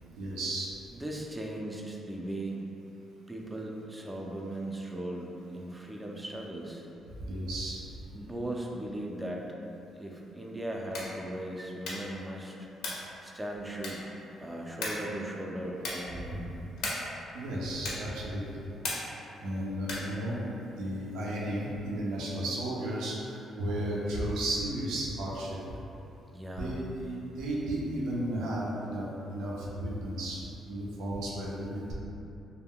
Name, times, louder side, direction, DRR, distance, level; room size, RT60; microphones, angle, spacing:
voice 1, 0.2-0.7 7.3-7.8 12.9-13.0 16.3-16.4 17.3-18.4 19.4-25.6 26.6-31.9, right 1 dB, 85° right, -5 dB, 0.4 m, -34 dB
voice 2, 0.9-2.6 3.3-6.9 8.1-9.5 10.0-12.7 13.2-14.0 14.4-16.5 19.2-19.3 26.3-26.8, right 1 dB, 15° right, 0 dB, 0.3 m, -38 dB
sound 1, 10.8-11.2 11.8-12.2 12.8-13.1 13.8-14.2 14.8-15.1 15.8-16.1 16.8-17.2 17.8-18.2 18.8-19.2 19.8-20.2, left 2 dB, 85° left, 0.6 m, -36 dB
2.2 x 2.1 x 3.5 m, 2.9 s
cardioid pair, 90°, 0 cm